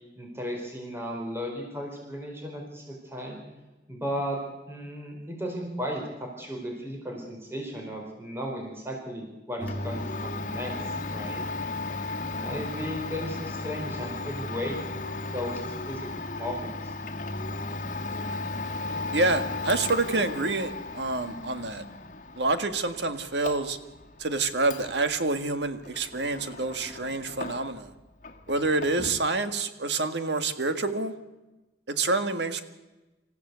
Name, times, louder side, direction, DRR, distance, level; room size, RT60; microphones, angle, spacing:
voice 1, 0.2-3.4 3.9-4.4 4.7-10.7 11.1-11.4 12.4-14.8 15.0-16.1 16.4-16.9, equal, 15° right, 1 dB, 4.3 m, -35 dB
Domestic sounds home sounds, 9.6-27.9 28.2-29.3, left 2 dB, 45° left, 1.9 m, -36 dB
voice 2, 19.1-21.9 22.4-23.8 24.2-27.9 28.5-31.1 31.9-32.6, right 3 dB, 75° right, 9 dB, 1.8 m, -27 dB
26.5 x 15.0 x 8.2 m, 1.1 s
head